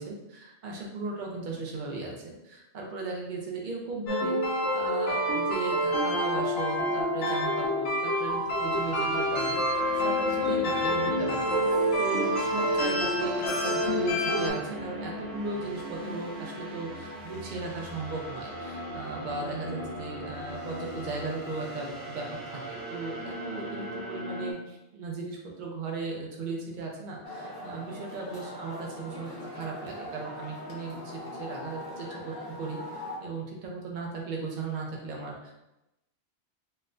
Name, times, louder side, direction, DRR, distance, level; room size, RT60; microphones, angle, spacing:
voice 1, 0.0-4.4 4.7-11.5 12.0-35.5, right 3 dB, 50° right, -1 dB, 0.7 m, -37 dB
sound 1, 4.1-14.5, equal, 65° left, 1.0 m, -27 dB
sound 2, 8.3-24.5, left 1 dB, 75° right, 1.1 m, -38 dB
sound 3, 27.2-33.2, left 1 dB, 35° left, 0.3 m, -41 dB
4.1 x 2.2 x 2.5 m, 0.94 s
omnidirectional pair, 1.1 m